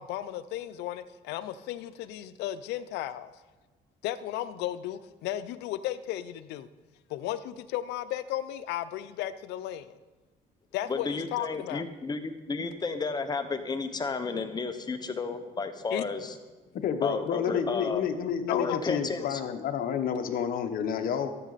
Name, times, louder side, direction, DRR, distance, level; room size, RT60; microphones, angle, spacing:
voice 1, 0.0-3.3 4.0-6.7 7.1-10.0 10.7-11.9 15.9-16.1 18.5-18.8, left 12 dB, 85° left, 13 dB, 0.6 m, -34 dB
voice 2, 10.9-16.3 17.0-18.0 18.5-19.4, left 4 dB, 25° left, 7 dB, 1.0 m, -32 dB
voice 3, 16.7-21.4, left 7 dB, 60° left, 7 dB, 1.0 m, -30 dB
13.5 x 7.6 x 4.1 m, 1.2 s
cardioid pair, 110°, 17 cm